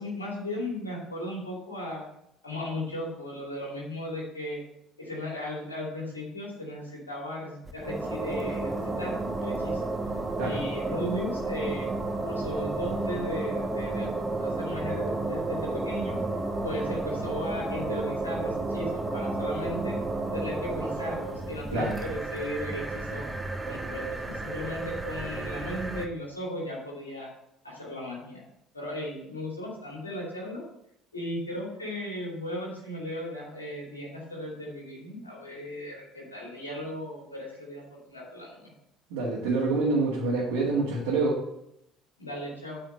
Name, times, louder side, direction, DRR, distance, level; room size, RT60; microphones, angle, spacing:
voice 1, 0.0-2.1 2.4-4.6 5.0-9.8 10.4-11.9 12.2-16.2 16.6-20.0 20.3-23.3 23.7-27.3 27.6-28.4 28.7-30.6 31.1-38.7 42.2-42.8, left 1 dB, 85° left, -3 dB, 2.6 m, -36 dB
sound 1, 7.6-26.1, right 2 dB, 15° right, 1.2 m, -32 dB
voice 2, 39.1-41.4, right 3 dB, 65° right, -5 dB, 2.0 m, -26 dB
8.6 x 4.9 x 6.6 m, 0.77 s
figure-of-eight pair, 55°, 0 cm